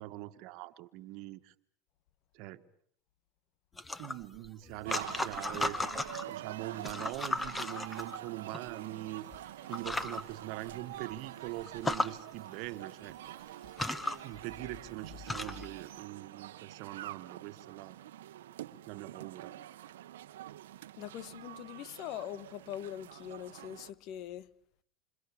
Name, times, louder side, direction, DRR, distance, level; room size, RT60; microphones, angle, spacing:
voice 1, 0.0-1.5 2.3-2.6 4.0-5.8 6.3-13.2 14.2-18.0 18.9-19.6, right 17 dB, 60° right, 1.5 m, -42 dB
sound 1, 3.8-6.3 6.7-8.6 9.3-9.4 9.7-10.2 10.7-10.8 11.1-11.2 11.7-12.1 13.1-13.2 13.6-15.7, left 2 dB, 15° left, 1.7 m, -36 dB
sound 2, 4.8-23.9, right 13 dB, 80° right, 1.1 m, -47 dB
voice 2, 21.0-24.5, left 11 dB, 60° left, 1.4 m, -42 dB
28.0 x 27.5 x 7.1 m
hypercardioid pair, 85°, 0 cm